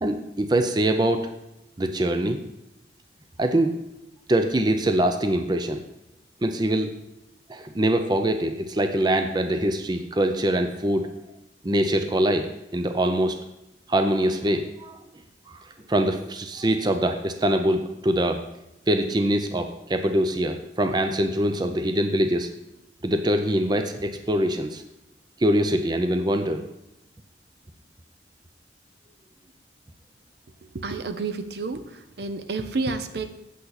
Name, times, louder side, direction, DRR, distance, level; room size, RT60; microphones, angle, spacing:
voice 1, 0.0-1.3 1.8-2.4 3.4-3.8 4.3-5.8 6.4-6.9 7.5-11.1 11.6-13.4 13.9-15.0 15.5-15.6 15.9-18.4 18.9-22.5 23.0-24.8 25.4-26.6, right 1 dB, 25° right, 7 dB, 0.5 m, -23 dB
voice 2, 30.7-33.3, right 3 dB, 65° right, 9 dB, 0.7 m, -30 dB
8.4 x 7.7 x 4.0 m, 0.88 s
head